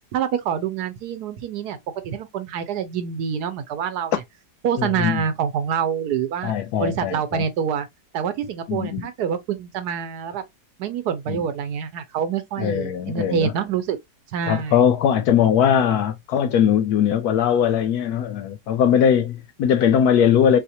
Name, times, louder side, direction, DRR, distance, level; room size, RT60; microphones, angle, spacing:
voice 1, 0.1-1.8 2.0-4.1 4.6-6.5 6.8-7.9 8.1-10.4 10.8-14.0 14.3-14.8, right 7 dB, 70° right, 1.1 m, -26 dB
voice 2, 4.8-5.2 6.4-7.5 8.7-9.1 11.3-11.4 12.6-13.5 14.5-20.6, left 8 dB, 70° left, 1.0 m, -20 dB
4.1 x 2.4 x 2.7 m
omnidirectional pair, 1.9 m